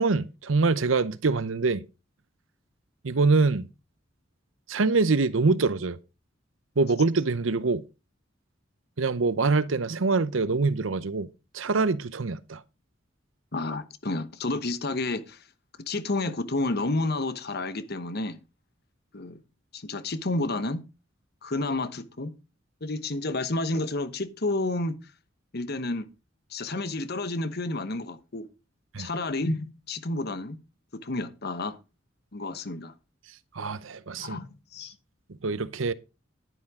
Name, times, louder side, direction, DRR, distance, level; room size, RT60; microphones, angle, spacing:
voice 1, 0.0-1.8 3.0-3.7 4.7-6.0 6.8-7.8 9.0-11.3 11.5-12.6 28.9-29.1 33.5-34.4 35.4-35.9, right 3 dB, 85° right, 0.8 m, -24 dB
voice 2, 13.5-15.4 15.8-18.4 19.1-19.4 19.7-20.8 21.4-22.3 22.8-24.9 25.5-26.1 26.5-28.5 29.0-30.6 30.9-31.8 32.3-32.9 34.2-34.9, left 2 dB, 55° left, 1.1 m, -30 dB
11.0 x 9.9 x 3.7 m
head